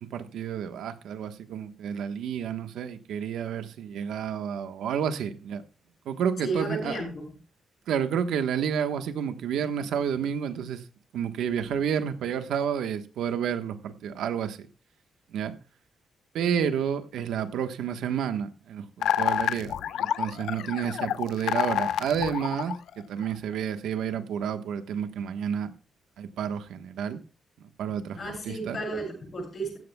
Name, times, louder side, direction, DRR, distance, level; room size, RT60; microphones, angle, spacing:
voice 1, 0.0-5.6 6.0-7.0 7.9-10.8 11.1-14.7 15.3-15.5 16.3-25.7 26.2-27.2 27.8-28.2 28.4-28.8, right 8 dB, 85° right, 1.2 m, -30 dB
voice 2, 6.4-7.3 28.2-29.8, right 2 dB, 35° left, 7.3 m, -33 dB
sound 1, 19.0-23.2, left 10 dB, 85° left, 0.7 m, -28 dB
15.5 x 13.5 x 2.3 m
wide cardioid pair, 180°, 0 cm